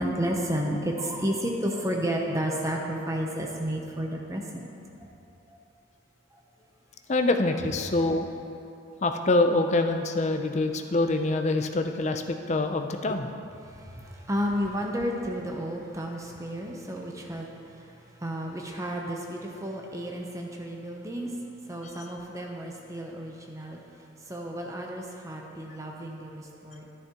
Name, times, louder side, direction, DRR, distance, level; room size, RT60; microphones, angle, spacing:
voice 1, 0.0-4.7 5.0-5.1 13.6-17.5 17.8-17.9 18.2-21.3 21.7-23.8 24.3-26.9, equal, 15° right, 0 dB, 0.7 m, -32 dB
voice 2, 7.1-8.3 9.0-13.3 21.8-21.9, left 2 dB, 35° left, 6 dB, 0.5 m, -25 dB
11.5 x 10.5 x 3.0 m, 2.7 s
head